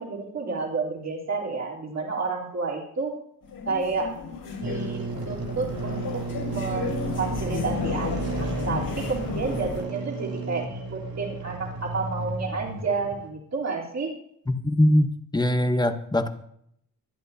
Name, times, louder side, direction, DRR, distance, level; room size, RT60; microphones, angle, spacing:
voice 1, 0.0-3.1 3.7-4.1 4.4-6.1 6.4-14.1, right 4 dB, 50° right, -2 dB, 3.3 m, -30 dB
sound 1, 3.4-9.8, left 5 dB, 80° left, 5.6 m, -33 dB
sound 2, 4.6-13.3, right 4 dB, 85° right, 2.4 m, -34 dB
voice 2, 14.5-16.3, left 1 dB, 10° left, 8 dB, 0.8 m, -22 dB
23.0 x 10.5 x 2.7 m, 0.71 s
wide cardioid pair, 165°, 35 cm